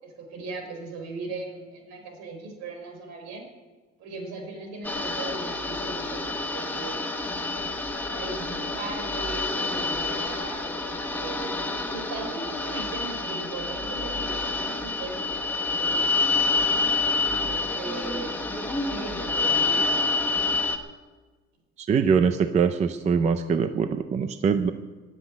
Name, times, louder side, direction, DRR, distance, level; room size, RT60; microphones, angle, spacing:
voice 1, 0.0-3.5 4.0-7.0 8.0-11.5 11.9-16.8 17.3-18.3 18.8-20.1, right 3 dB, 65° right, 4 dB, 4.4 m, -38 dB
sound 1, 4.8-20.8, left 3 dB, 5° left, 1.0 m, -28 dB
voice 2, 21.8-24.7, right 6 dB, 25° right, 9 dB, 0.5 m, -23 dB
15.5 x 8.1 x 9.8 m, 1.3 s
cardioid pair, 180°, 29 cm